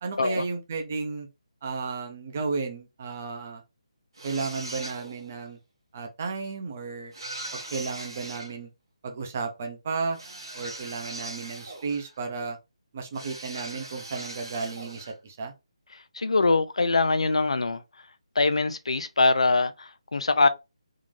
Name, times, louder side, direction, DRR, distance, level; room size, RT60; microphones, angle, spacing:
voice 1, 0.0-1.3 1.6-3.6 4.2-5.6 5.9-7.1 7.5-8.7 9.0-10.2 10.5-12.6 12.9-15.5, right 4 dB, 20° right, 0.5 m, -33 dB
sound 1, 4.1-5.3 7.1-8.5 10.1-12.2 13.1-15.2, right 2 dB, 50° right, 1.6 m, -40 dB
voice 2, 16.1-17.8 18.4-20.5, left 3 dB, 70° left, 0.5 m, -23 dB
3.7 x 2.5 x 3.1 m
hypercardioid pair, 180°, 3 cm